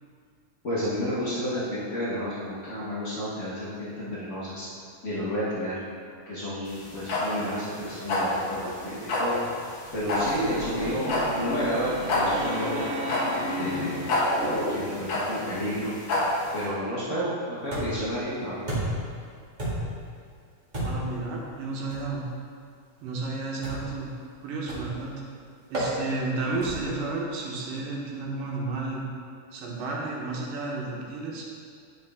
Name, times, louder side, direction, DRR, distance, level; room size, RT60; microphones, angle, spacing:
voice 1, 0.6-4.7 5.0-5.8 6.3-9.4 9.9-12.8 13.6-14.1 14.7-15.9 16.5-18.7, equal, 75° left, -9 dB, 0.6 m, -31 dB
sound 1, 6.7-16.6, left 2 dB, 55° left, 2.4 m, -28 dB
sound 2, 9.9-15.1, equal, 60° right, 0.7 m, -33 dB
sound 3, 17.7-18.1 18.7-19.1 19.6-20.0 20.7-21.2 21.9-22.1 23.6-24.0 24.7-25.0 25.7-25.9 26.6-27.0, right 1 dB, 20° right, 1.4 m, -31 dB
voice 2, 20.8-22.3 23.0-24.1 24.4-25.1 25.7-29.0 29.5-31.4, right 3 dB, 80° right, -3 dB, 2.8 m, -32 dB
11.0 x 5.4 x 3.6 m, 2.2 s
omnidirectional pair, 3.8 m